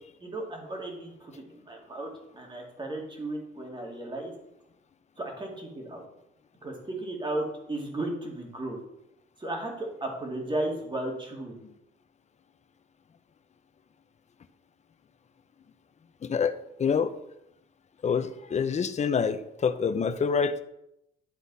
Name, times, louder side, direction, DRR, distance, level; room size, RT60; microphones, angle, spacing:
voice 1, 0.2-4.3 5.2-6.0 6.6-8.8 9.4-11.6, right 2 dB, 25° right, 0 dB, 2.2 m, -35 dB
voice 2, 16.2-16.5 16.8-17.1 18.0-20.6, left 6 dB, 35° left, 11 dB, 0.6 m, -26 dB
11.5 x 4.0 x 4.0 m, 0.84 s
cardioid pair, 90°, 20 cm